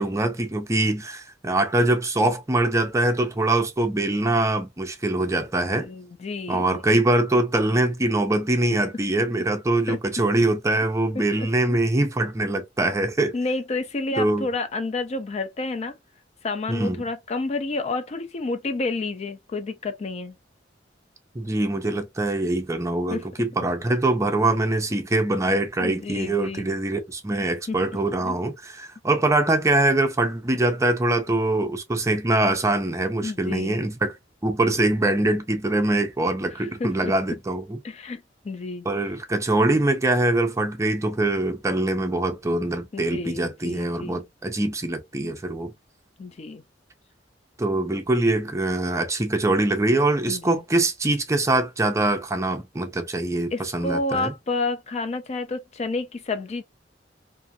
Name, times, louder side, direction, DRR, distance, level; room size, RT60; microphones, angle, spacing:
voice 1, 0.0-5.9 6.5-13.3 14.2-14.5 16.7-17.0 21.3-34.2 34.4-37.8 38.9-45.7 47.6-54.3, right 2 dB, 15° right, 0.5 m, -23 dB
voice 2, 5.8-6.7 9.9-10.0 11.4-11.8 13.3-15.9 16.4-20.3 23.1-23.3 25.8-26.7 27.7-27.8 28.2-28.4 33.2-33.8 36.5-37.1 37.8-38.9 42.9-44.2 46.2-46.6 50.3-50.6 53.5-56.6, left 3 dB, 35° left, 0.4 m, -30 dB
2.6 x 2.5 x 2.6 m
head